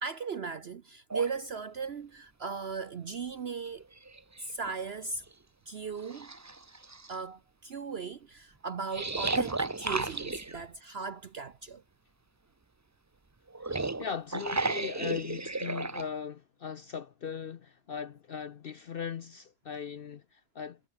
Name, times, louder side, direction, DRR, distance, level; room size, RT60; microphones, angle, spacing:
voice 1, 0.0-3.8 4.4-5.2 5.7-6.3 7.1-11.8, right 5 dB, 50° right, 1.0 m, -37 dB
sound 1, 1.1-1.3 3.1-3.2 3.7-4.7 5.3-5.4 6.0-7.1 8.9-10.7 13.5-16.1, right 3 dB, 20° right, 0.4 m, -33 dB
voice 2, 14.0-20.8, left 7 dB, 60° left, 0.6 m, -39 dB
omnidirectional pair, 1.6 m